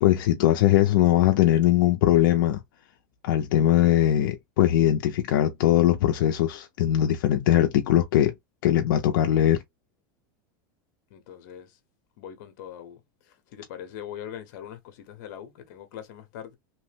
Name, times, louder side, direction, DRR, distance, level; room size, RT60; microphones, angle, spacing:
voice 1, 0.0-2.6 3.2-8.3 8.6-9.6, left 12 dB, 80° left, 0.4 m, -21 dB
voice 2, 11.1-11.8 12.2-13.0 13.3-16.6, left 10 dB, 55° left, 0.8 m, -41 dB
2.9 x 2.1 x 3.2 m
supercardioid pair, 170°, 11 cm